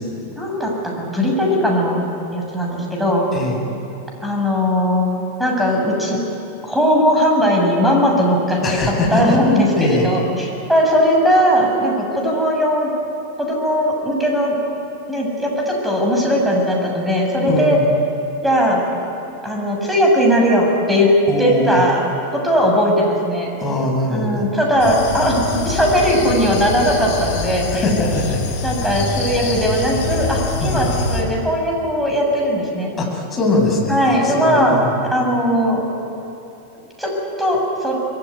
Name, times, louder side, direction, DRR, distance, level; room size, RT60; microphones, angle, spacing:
voice 1, 0.4-2.0 2.3-3.2 4.2-5.1 5.4-6.2 6.6-8.6 9.1-12.9 13.4-14.6 15.1-17.8 18.4-18.8 19.4-21.1 21.4-22.0 22.3-23.5 24.1-27.8 28.6-32.9 33.9-34.8 35.1-35.8 37.0-37.1 37.4-38.0, equal, 5° right, -1 dB, 7.7 m, -18 dB
voice 2, 8.6-9.4 9.7-10.1 17.5-17.8 21.3-21.8 23.6-24.5 27.7-28.5 30.6-30.9 33.0-35.0, left 2 dB, 20° left, 0 dB, 7.5 m, -21 dB
sound 1, 24.8-31.2, left 3 dB, 50° left, 5.5 m, -25 dB
26.5 x 21.5 x 9.8 m, 2.9 s
figure-of-eight pair, 90°, 0 cm